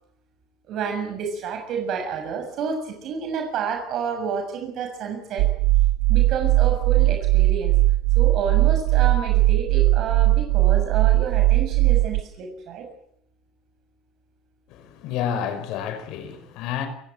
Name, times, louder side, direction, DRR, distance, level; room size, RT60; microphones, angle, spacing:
voice 1, 0.7-5.5 6.1-7.7 8.2-12.9, right 6 dB, 55° right, 6.9 m, -29 dB
sound 1, 5.4-12.2, right 17 dB, 75° right, 1.0 m, -19 dB
voice 2, 14.7-16.9, left 8 dB, 70° left, 5.4 m, -30 dB
29.0 x 16.5 x 9.2 m
cardioid pair, 115°, 0 cm